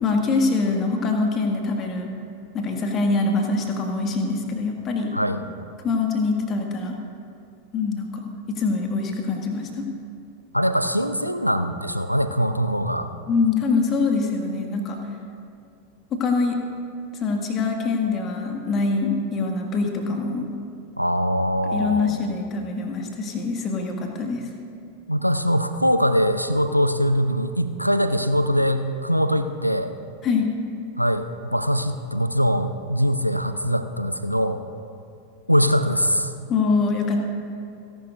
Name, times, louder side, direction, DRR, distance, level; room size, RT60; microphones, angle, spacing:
voice 1, 0.0-2.1 2.5-5.1 5.8-7.0 7.7-9.8 13.3-15.0 16.1-16.6 17.2-20.5 21.7-24.5 30.2-30.5 36.5-37.2, left 4 dB, 30° left, 2 dB, 1.9 m, -24 dB
voice 2, 10.5-13.1 21.0-22.2 25.1-29.9 31.0-34.6 35.5-36.3, equal, 90° left, 10 dB, 0.6 m, -22 dB
29.5 x 11.0 x 2.6 m, 2.5 s
figure-of-eight pair, 90°, 0 cm